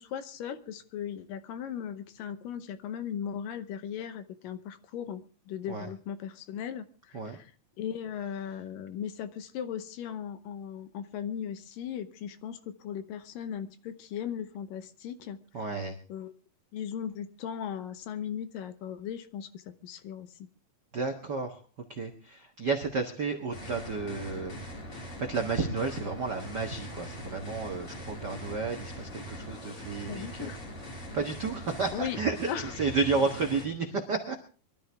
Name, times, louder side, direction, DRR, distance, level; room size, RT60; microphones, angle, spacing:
voice 1, 0.0-7.5 7.8-15.7 16.1-16.3 16.7-20.5 30.1-30.6 31.9-32.7, left 9 dB, 75° left, 11 dB, 2.4 m, -38 dB
voice 2, 15.5-16.0 20.9-21.6 21.9-24.6 24.9-30.5 31.1-34.4, right 4 dB, 75° right, 3 dB, 0.9 m, -32 dB
sound 1, 23.5-33.7, equal, 35° left, 4.4 m, -42 dB
23.5 x 12.5 x 3.5 m, 0.38 s
omnidirectional pair, 4.3 m